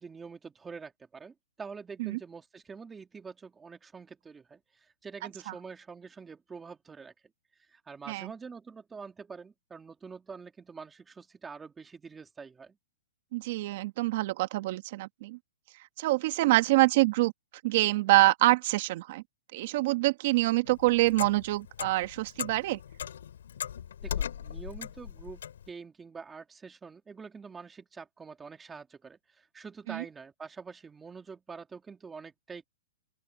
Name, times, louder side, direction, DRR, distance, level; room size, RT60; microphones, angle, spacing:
voice 1, 0.0-7.1 7.7-12.8 24.0-25.4 25.7-32.6, right 5 dB, 10° right, 2.9 m, -46 dB
voice 2, 13.3-15.4 16.0-17.3 17.6-19.2 19.5-22.8 29.9-30.0, right 19 dB, 45° right, 1.7 m, -26 dB
Clock, 20.6-25.7, left 9 dB, 70° left, 7.0 m, -38 dB
open air
hypercardioid pair, 160°, 0 cm